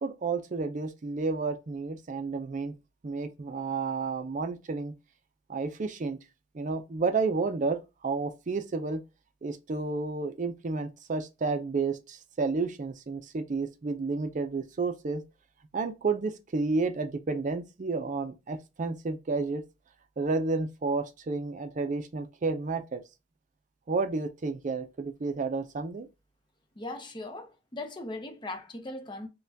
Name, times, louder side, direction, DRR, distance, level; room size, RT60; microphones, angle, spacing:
voice 1, 0.0-2.7 3.0-4.9 5.5-6.2 6.5-9.0 9.4-15.2 15.7-19.6 20.2-23.0 23.9-26.1, right 4 dB, 45° right, 0.5 m, -31 dB
voice 2, 26.8-29.3, left 2 dB, 25° left, 0.7 m, -39 dB
5.3 x 2.2 x 2.7 m
head